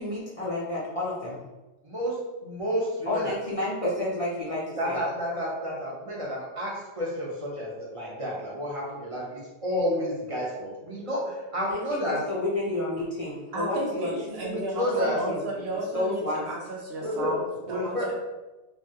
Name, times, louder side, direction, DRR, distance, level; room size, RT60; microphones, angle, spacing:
voice 1, 0.0-1.4 3.1-5.0 11.7-12.0 12.3-14.6 14.9-15.4 15.9-16.5, left 2 dB, 40° left, -7 dB, 0.5 m, -30 dB
voice 2, 1.8-2.1 2.4-3.2 4.8-12.2 14.5-15.2 17.0-17.3 17.7-18.1, equal, 35° right, -4 dB, 0.7 m, -30 dB
voice 3, 13.5-18.1, right 1 dB, 65° right, -1 dB, 0.8 m, -33 dB
3.1 x 2.3 x 2.7 m, 1.1 s
omnidirectional pair, 1.1 m